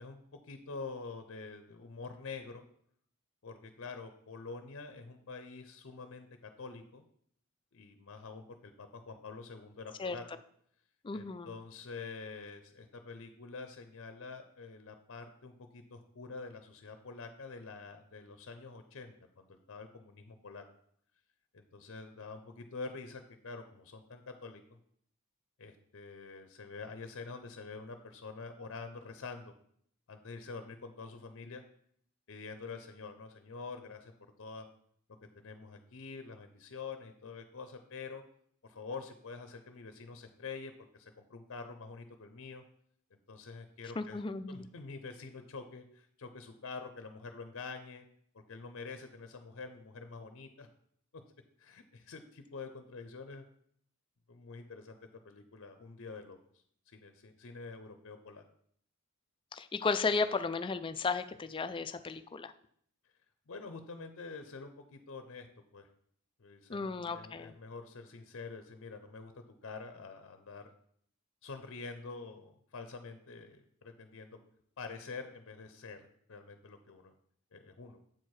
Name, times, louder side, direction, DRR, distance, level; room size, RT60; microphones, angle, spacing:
voice 1, 0.0-2.6 3.4-7.0 7.7-10.2 11.1-20.6 21.5-24.6 25.6-29.5 30.1-31.6 32.3-34.1 34.4-34.7 35.3-38.2 38.6-42.6 43.1-44.2 44.5-48.1 48.5-50.7 51.6-53.5 54.3-55.0 55.2-56.4 56.9-58.4 63.5-65.5 65.7-65.9 66.4-70.6 71.4-74.4 74.8-77.1 77.5-78.0, left 4 dB, 60° left, 8 dB, 0.6 m, -46 dB
voice 2, 11.0-11.5 44.0-44.7 59.5-62.5 66.7-67.5, left 4 dB, 25° left, 11 dB, 0.3 m, -34 dB
7.7 x 4.6 x 4.7 m, 0.65 s
head